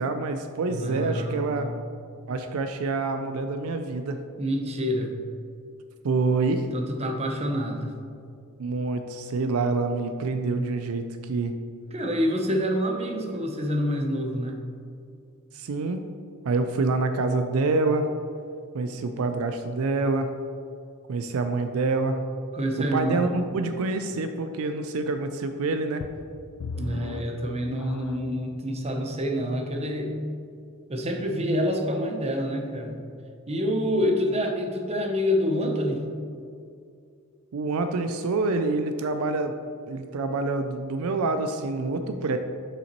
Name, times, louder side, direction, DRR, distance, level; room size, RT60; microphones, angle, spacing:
voice 1, 0.0-1.7 2.3-4.2 6.0-6.7 8.6-11.5 15.5-16.0 16.4-18.1 18.7-20.3 21.1-22.2 22.8-26.0 34.0-34.2 37.5-39.5 39.9-42.4, right 3 dB, 75° right, 8 dB, 0.4 m, -26 dB
voice 2, 0.7-1.8 4.4-5.1 6.7-7.9 11.9-14.6 22.5-23.4 26.8-30.2 30.9-33.0 33.5-36.0, equal, 30° right, 2 dB, 0.7 m, -27 dB
sound 1, 26.0-28.4 29.1-29.2 29.8-29.9, left 3 dB, 80° left, 0.3 m, -37 dB
6.9 x 5.7 x 3.0 m, 2.4 s
head